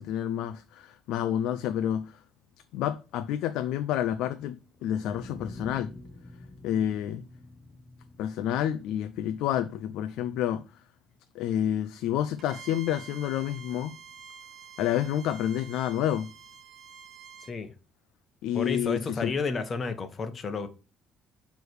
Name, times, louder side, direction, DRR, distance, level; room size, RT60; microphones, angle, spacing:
voice 1, 0.0-2.2 2.7-4.6 4.8-5.9 6.6-7.2 8.2-10.6 11.4-14.0 14.8-16.3 18.4-19.3, left 11 dB, 85° left, 0.4 m, -29 dB
sound 1, 4.6-10.6, left 2 dB, 20° left, 1.0 m, -48 dB
Bowed string instrument, 12.4-17.6, right 8 dB, 65° right, 1.0 m, -48 dB
voice 2, 17.4-17.7 18.5-20.7, left 4 dB, 40° left, 1.2 m, -31 dB
6.3 x 3.4 x 4.6 m
cardioid pair, 100°, 0 cm